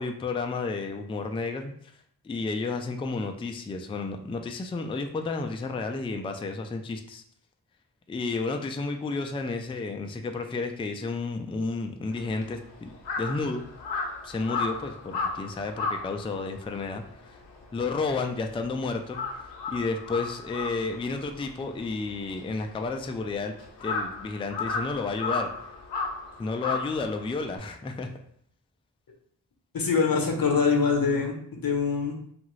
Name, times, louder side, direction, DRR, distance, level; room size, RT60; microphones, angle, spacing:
voice 1, 0.0-1.7 2.2-7.2 8.1-13.6 14.2-17.4 17.7-25.5 26.4-28.1, left 3 dB, 15° left, 5 dB, 0.3 m, -32 dB
Crow, 12.1-18.7 19.0-27.6, left 4 dB, 85° left, 0.6 m, -34 dB
voice 2, 29.7-31.4 31.6-32.2, left 5 dB, 55° left, 2 dB, 0.8 m, -24 dB
2.6 x 2.4 x 3.1 m, 0.65 s
cardioid pair, 40°, 43 cm